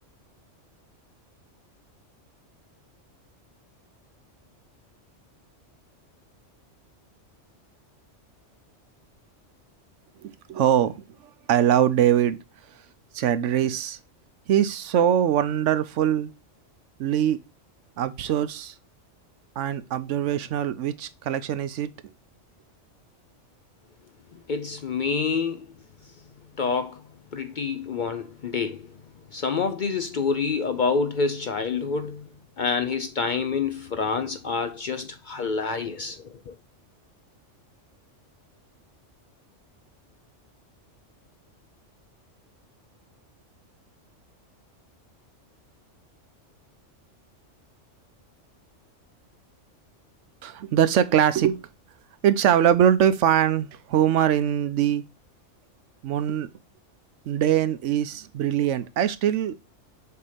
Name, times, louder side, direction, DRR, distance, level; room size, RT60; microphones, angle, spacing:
voice 1, 10.2-11.0 11.5-12.4 13.1-14.0 14.5-16.3 17.0-17.4 18.0-18.7 19.6-21.9 50.4-51.6 52.2-55.0 56.0-56.5 57.3-59.6, right 10 dB, 75° right, 1.0 m, -22 dB
voice 2, 24.5-25.7 26.6-27.0 27.3-28.9 29.3-32.3 32.6-36.5, left 5 dB, 55° left, 0.6 m, -27 dB
6.8 x 2.9 x 4.9 m
omnidirectional pair, 1.3 m